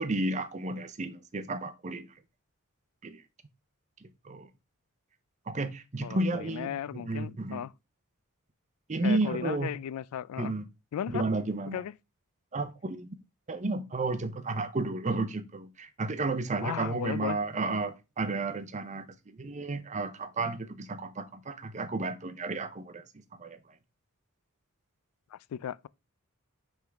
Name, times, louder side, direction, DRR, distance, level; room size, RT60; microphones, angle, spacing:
voice 1, 0.0-2.1 3.0-3.2 4.0-4.5 5.5-7.6 8.9-9.7 10.4-10.6 11.1-11.8 12.5-13.1 13.5-23.0 23.4-23.6, right 2 dB, 35° right, 0.6 m, -32 dB
voice 2, 6.0-7.7 9.0-10.5 10.9-11.2 11.7-11.9 16.6-17.4 25.3-25.9, left 9 dB, 85° left, 0.3 m, -36 dB
9.5 x 3.6 x 3.4 m
head